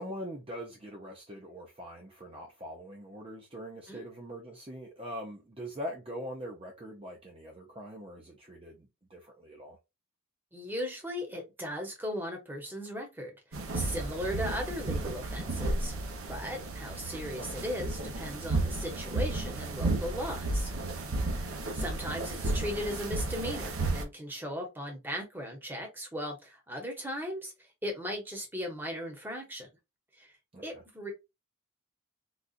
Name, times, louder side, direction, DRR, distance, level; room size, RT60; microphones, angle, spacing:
voice 1, 0.0-9.8 14.3-14.4 16.6-16.7 21.2-21.5 30.5-30.8, equal, 25° right, 0.6 m, -43 dB
voice 2, 10.5-15.9 16.2-20.7 21.3-21.4 21.7-29.7 30.2-30.3 30.6-31.1, equal, 10° right, 0.9 m, -37 dB
sound 1, 13.5-24.0, right 2 dB, 75° right, 0.8 m, -33 dB
3.9 x 2.3 x 2.4 m
head